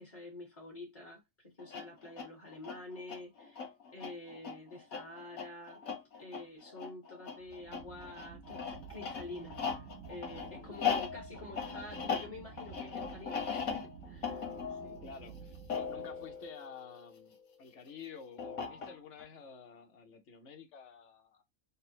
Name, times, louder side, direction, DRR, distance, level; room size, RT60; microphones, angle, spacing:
voice 1, 0.0-5.8 6.2-15.0, left 2 dB, 25° left, 1.3 m, -48 dB
sound 1, 1.6-17.4 18.4-19.2, left 6 dB, 80° left, 1.4 m, -39 dB
sound 2, 7.4-16.5, right 7 dB, 70° right, 1.1 m, -52 dB
voice 2, 10.4-10.8 15.0-21.4, left 6 dB, 60° left, 1.0 m, -51 dB
4.0 x 2.1 x 4.2 m
omnidirectional pair, 1.4 m